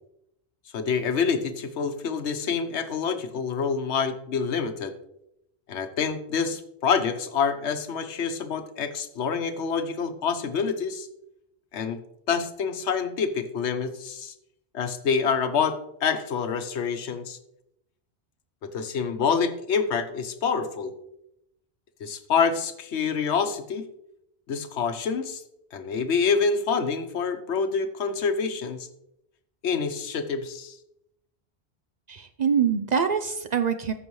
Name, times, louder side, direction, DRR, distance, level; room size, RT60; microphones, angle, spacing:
voice 1, 0.7-4.9 5.7-11.1 11.7-12.0 12.3-14.3 14.7-17.4 18.6-20.9 22.0-23.9 24.5-25.4 25.7-28.9 29.6-30.8, left 5 dB, 85° left, 9 dB, 1.1 m, -27 dB
voice 2, 32.1-33.9, right 7 dB, 50° right, 9 dB, 0.6 m, -24 dB
14.0 x 6.0 x 3.1 m, 0.81 s
omnidirectional pair, 1.1 m